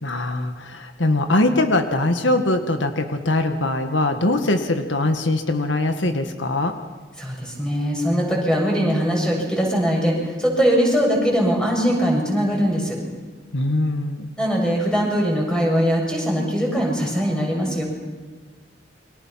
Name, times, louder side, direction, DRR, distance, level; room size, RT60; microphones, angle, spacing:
voice 1, 0.0-6.7 13.5-14.3, left 2 dB, 80° left, 6 dB, 1.8 m, -22 dB
voice 2, 7.2-13.0 14.4-17.8, equal, 5° left, -1 dB, 7.3 m, -21 dB
29.5 x 25.0 x 5.9 m, 1.3 s
head